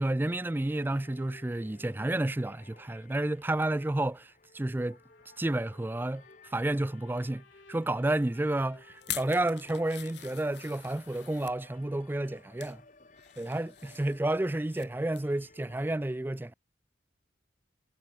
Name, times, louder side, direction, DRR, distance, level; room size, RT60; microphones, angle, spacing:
voice 1, 0.0-5.0 5.4-6.2 6.5-12.8 13.4-16.5, right 1 dB, 10° right, 0.3 m, -31 dB
sound 1, 0.5-16.0, left 3 dB, 40° left, 2.6 m, -58 dB
Trumpet, 4.9-12.9, left 5 dB, 80° left, 6.3 m, -63 dB
sound 2, 9.0-11.6 12.2-12.8 13.2-14.9 15.1-15.4 15.8-15.9, left 13 dB, 60° left, 2.7 m, -44 dB
head